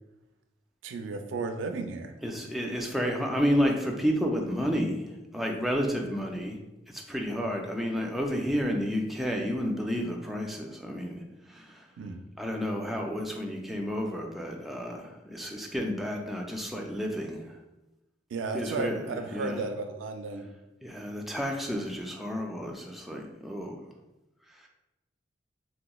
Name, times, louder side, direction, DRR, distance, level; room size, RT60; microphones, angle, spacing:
voice 1, 0.8-2.1 12.0-12.2 18.3-20.5, right 3 dB, 80° right, 6 dB, 0.3 m, -34 dB
voice 2, 2.2-6.6 6.9-11.2 11.5-11.8 12.4-17.6 18.5-19.0 19.3-19.6 20.8-23.8, equal, ahead, 1 dB, 0.3 m, -31 dB
3.4 x 2.9 x 2.3 m, 0.99 s
head